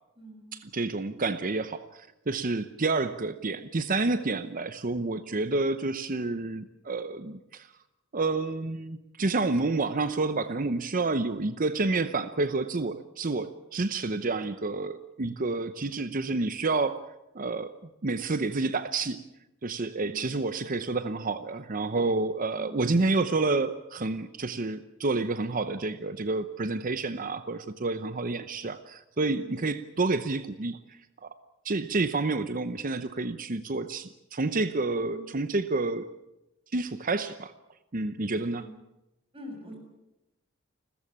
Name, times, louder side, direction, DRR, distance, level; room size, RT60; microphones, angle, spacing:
voice 1, 0.2-0.6 5.0-5.4 20.0-20.3 22.5-22.8 29.4-29.7 35.0-35.3 38.5-38.7 39.3-39.8, equal, 25° right, 2 dB, 7.2 m, -45 dB
voice 2, 0.7-7.7 8.1-17.7 18.0-19.2 19.6-31.3 31.6-36.1 36.7-37.5 37.9-38.7, right 3 dB, 40° right, 12 dB, 0.8 m, -29 dB
29.5 x 14.5 x 8.6 m, 0.92 s
head